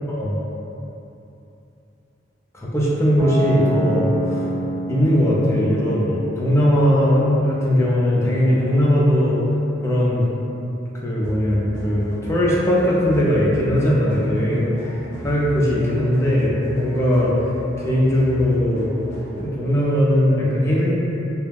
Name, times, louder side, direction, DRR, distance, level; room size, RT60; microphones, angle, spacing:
voice 1, 0.1-0.4 2.5-4.5 4.9-9.4 9.8-10.3 11.0-17.3 17.8-18.9 19.3-20.9, equal, 15° left, -6 dB, 0.4 m, -19 dB
sound 1, 3.2-9.2, right 1 dB, ahead, 1.0 m, -30 dB
sound 2, 11.2-19.7, left 1 dB, 40° left, 0.7 m, -36 dB
2.3 x 2.1 x 3.3 m, 2.9 s
head